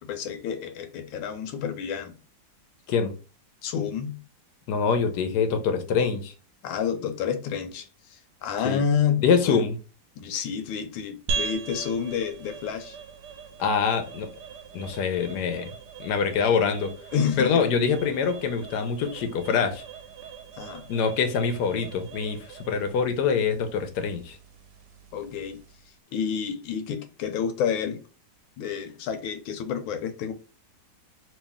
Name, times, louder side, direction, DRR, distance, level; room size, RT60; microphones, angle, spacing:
voice 1, 0.0-2.2 3.6-4.2 6.6-9.6 10.2-13.0 17.1-17.6 20.6-20.9 25.1-25.6 26.1-28.0 28.6-30.3, left 7 dB, 85° left, 1.4 m, -29 dB
voice 2, 4.7-6.3 8.6-8.8 9.2-9.8 13.6-14.3 14.7-15.7 16.0-16.9 17.4-19.8 20.9-24.4, left 6 dB, 70° left, 1.1 m, -25 dB
sound 1, 11.3-25.9, right 5 dB, 70° right, 1.1 m, -40 dB
3.1 x 2.7 x 3.4 m
omnidirectional pair, 2.1 m